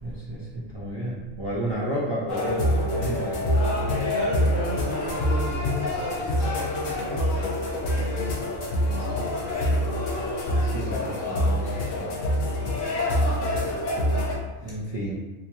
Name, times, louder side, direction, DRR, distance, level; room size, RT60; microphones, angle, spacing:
voice 1, 0.0-3.7 8.6-9.3 10.5-12.2 14.6-15.2, right 1 dB, 35° right, -7 dB, 0.4 m, -33 dB
sound 1, 2.3-14.3, left 1 dB, 70° left, 1.2 m, -25 dB
voice 2, 4.1-7.3 14.7-14.8, left 1 dB, 30° left, -10 dB, 1.0 m, -34 dB
3.5 x 3.0 x 2.9 m, 1.1 s
omnidirectional pair, 1.4 m